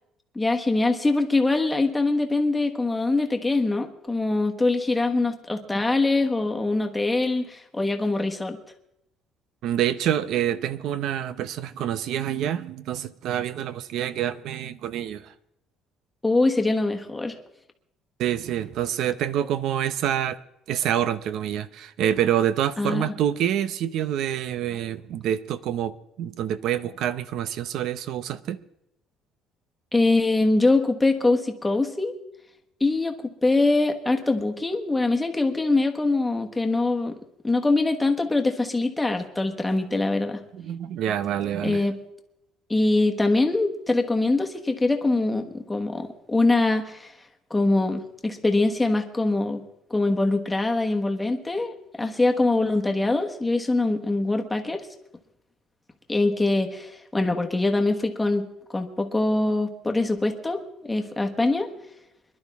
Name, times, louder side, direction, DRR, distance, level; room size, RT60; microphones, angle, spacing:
voice 1, 0.3-8.6 16.2-17.4 22.8-23.1 29.9-32.1 32.8-33.1 33.4-37.1 37.4-40.4 41.6-42.0 42.7-47.1 47.5-49.6 49.9-54.9 56.1-58.5 58.7-61.7, left 2 dB, 10° left, 1.3 m, -23 dB
voice 2, 9.6-15.3 18.2-20.4 20.7-28.6 40.5-41.8, right 10 dB, 60° right, 0.7 m, -27 dB
24.5 x 11.5 x 3.5 m
cardioid pair, 145°, 0 cm